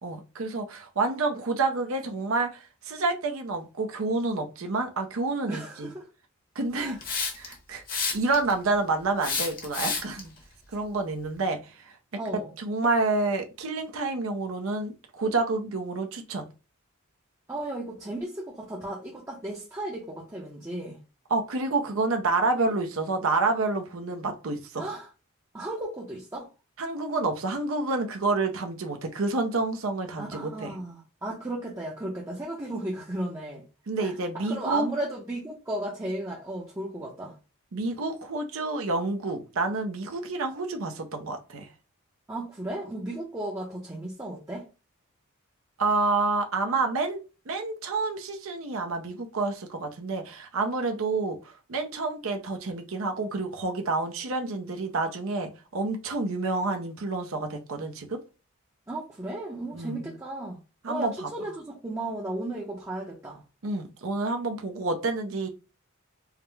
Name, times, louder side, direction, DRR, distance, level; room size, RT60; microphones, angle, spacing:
voice 1, 0.0-5.9 6.6-7.0 7.4-7.8 8.1-10.3 10.7-11.6 12.6-16.5 21.3-24.9 26.8-30.7 33.9-34.8 37.7-41.7 45.8-47.2 47.5-58.2 59.7-60.0 60.8-61.3 63.6-65.5, right 3 dB, 65° right, 0.6 m, -28 dB
voice 2, 5.5-6.1 6.8-7.0 12.2-12.5 17.5-21.0 24.8-25.1 25.5-26.5 30.2-33.6 34.0-37.3 42.3-44.6 58.9-60.6 60.9-63.4, right 1 dB, 15° right, 0.7 m, -35 dB
Hiss, 7.0-7.5 7.9-8.5 9.2-10.2, left 4 dB, 40° left, 1.0 m, -29 dB
4.8 x 2.1 x 3.3 m
head